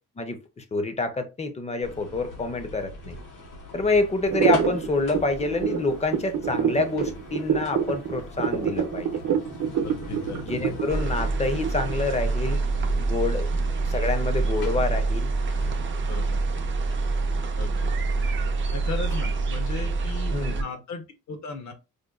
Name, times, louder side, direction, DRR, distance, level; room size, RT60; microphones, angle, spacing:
voice 1, 0.2-3.2 3.7-9.2 10.5-12.6 12.9-13.5 13.9-15.3 20.3-20.6, left 3 dB, 20° left, 7 dB, 0.5 m, -27 dB
sound 1, 1.8-19.6, left 1 dB, 80° left, 1.4 m, -42 dB
sound 2, 4.3-12.1, right 8 dB, 70° right, 0.7 m, -26 dB
voice 2, 9.8-10.5 16.1-16.4 17.6-17.9 18.7-21.7, left 4 dB, 60° left, 6 dB, 0.9 m, -36 dB
sound 3, 10.9-20.6, right 3 dB, 40° right, 0.4 m, -26 dB
5.0 x 2.2 x 2.3 m, 0.28 s
wide cardioid pair, 160°, 32 cm